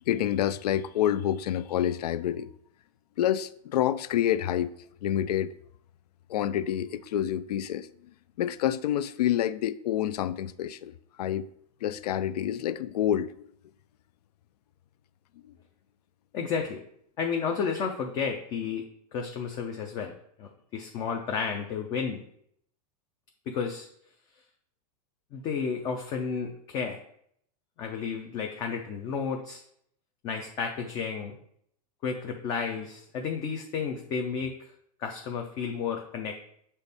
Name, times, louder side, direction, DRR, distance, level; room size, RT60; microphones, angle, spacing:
voice 1, 0.1-2.5 3.2-4.7 5.0-5.5 6.3-7.9 8.4-11.5 11.8-13.5 15.4-15.5, left 11 dB, 85° left, 0.5 m, -28 dB
voice 2, 16.3-16.8 17.2-18.9 19.1-20.1 20.4-22.2 23.5-23.9 25.3-27.0 27.8-29.6 30.2-31.3 32.0-34.5 35.0-36.4, left 6 dB, 20° left, 0.4 m, -32 dB
7.1 x 4.1 x 3.4 m
supercardioid pair, 170°, 20 cm